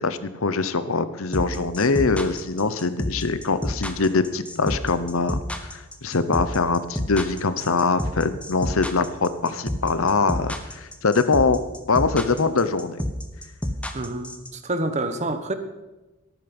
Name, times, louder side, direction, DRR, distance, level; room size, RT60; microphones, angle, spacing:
voice 1, 0.0-5.4 5.7-11.6 11.9-13.0, left 4 dB, 70° left, 13 dB, 0.9 m, -23 dB
sound 1, 1.3-14.5, left 1 dB, 5° left, 1.1 m, -28 dB
voice 2, 13.9-15.5, right 2 dB, 30° right, 9 dB, 1.1 m, -28 dB
18.0 x 9.1 x 5.4 m, 1.1 s
head